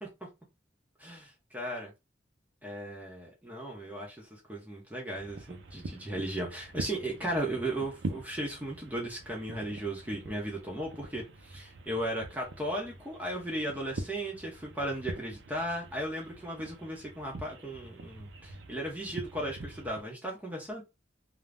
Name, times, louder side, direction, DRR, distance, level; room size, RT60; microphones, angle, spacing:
voice 1, 1.0-1.9 2.6-20.8, right 1 dB, 10° right, 0.7 m, -36 dB
sound 1, 5.2-20.0, right 2 dB, 80° right, 0.5 m, -44 dB
2.5 x 2.1 x 3.3 m
head